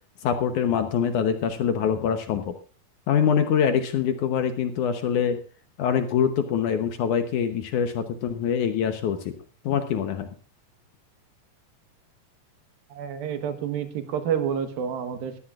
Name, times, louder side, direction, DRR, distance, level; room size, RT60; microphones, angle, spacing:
voice 1, 0.2-2.5 3.1-5.4 5.8-9.3 9.6-10.3, left 8 dB, 70° left, 7 dB, 2.2 m, -24 dB
voice 2, 12.9-15.4, right 8 dB, 75° right, 9 dB, 3.0 m, -29 dB
20.5 x 14.0 x 2.5 m, 0.34 s
omnidirectional pair, 4.3 m